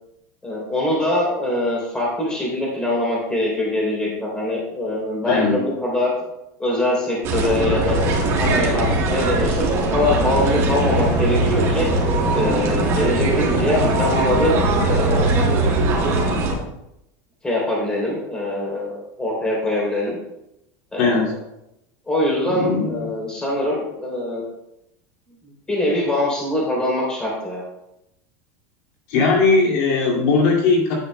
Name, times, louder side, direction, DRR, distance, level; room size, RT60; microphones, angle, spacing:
voice 1, 0.4-6.1 6.6-8.1 8.4-11.9 12.3-15.3 17.4-20.2 20.9-21.1 22.1-24.4 25.7-27.6, left 1 dB, 10° left, -4 dB, 3.1 m, -23 dB
voice 2, 5.3-5.6 21.0-21.3 22.5-23.0 29.1-30.9, left 4 dB, 60° left, -2 dB, 2.3 m, -18 dB
sound 1, 7.2-16.5, right 2 dB, 35° right, 2.1 m, -20 dB
10.5 x 8.2 x 2.2 m, 0.85 s
supercardioid pair, 160°, 9 cm